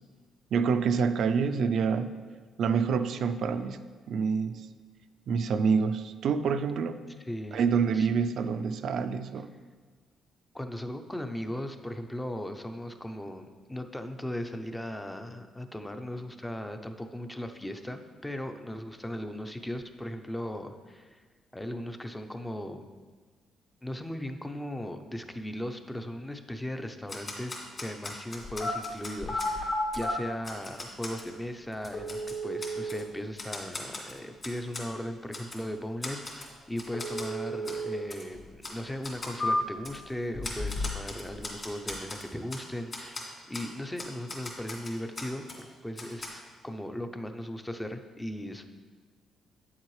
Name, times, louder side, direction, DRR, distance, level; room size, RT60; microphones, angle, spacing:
voice 1, 0.5-2.1 2.6-4.7 5.3-7.0 7.5-9.5, right 6 dB, 65° right, 10 dB, 0.4 m, -27 dB
voice 2, 7.2-7.7 7.9-8.1 10.5-21.2 21.5-22.8 23.8-48.6, left 1 dB, 10° left, 7 dB, 0.6 m, -38 dB
Typewriter, 27.1-29.5 29.9-30.1 30.4-31.3 31.7-33.0 33.4-34.9 35.3-35.6 36.0-36.5 36.8-37.3 37.6-37.8 38.1-38.2 38.6-38.8 39.0-39.4 39.8-40.0 40.4-42.6 42.9-43.2 43.5-43.7 44.0-45.6 46.0-46.3, left 2 dB, 35° left, 2.4 m, -40 dB
sound 1, 28.4-28.7 29.2-30.1 31.1-31.2 31.9-33.0 36.9-38.0 38.3-38.4 39.0-39.9 40.3-41.1 41.3-41.9, equal, 60° left, 2.2 m, -32 dB
8.9 x 7.3 x 3.2 m, 1.5 s
cardioid pair, 90°, 0 cm